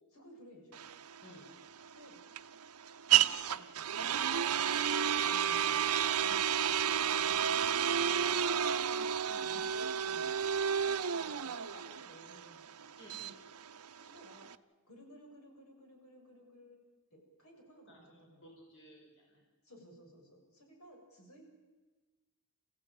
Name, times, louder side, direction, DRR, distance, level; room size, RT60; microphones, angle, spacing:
voice 1, 0.1-0.9 2.0-2.2 3.1-4.8 5.2-5.9 6.2-7.6 9.2-12.7 13.9-14.5 14.9-16.8 17.1-18.5 19.6-21.4, equal, 80° left, 1 dB, 6.9 m, -57 dB
sound 1, 0.7-14.5, right 8 dB, 85° right, 0.8 m, -31 dB
voice 2, 8.0-8.4 13.0-13.4 17.9-19.4, equal, 55° left, -1 dB, 5.6 m, -57 dB
29.0 x 16.0 x 9.0 m, 1.3 s
head